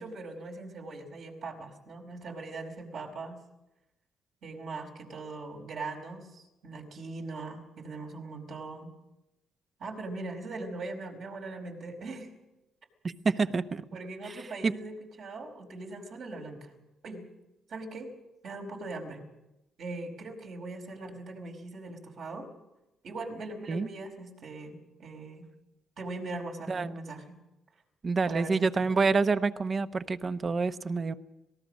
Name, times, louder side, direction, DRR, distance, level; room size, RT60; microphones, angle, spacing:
voice 1, 0.0-3.4 4.4-8.9 9.8-12.3 13.9-16.7 17.0-17.2 17.7-18.1 18.4-19.2 19.8-22.5 23.0-25.5 26.0-27.4 28.3-28.9, right 3 dB, 70° right, 1 dB, 4.9 m, -40 dB
voice 2, 13.0-13.8 14.3-14.4 14.6-14.7 23.7-23.9 26.7-26.9 28.0-31.1, right 4 dB, 40° right, 11 dB, 1.0 m, -27 dB
25.5 x 18.5 x 6.5 m, 0.97 s
cardioid pair, 90°, 0 cm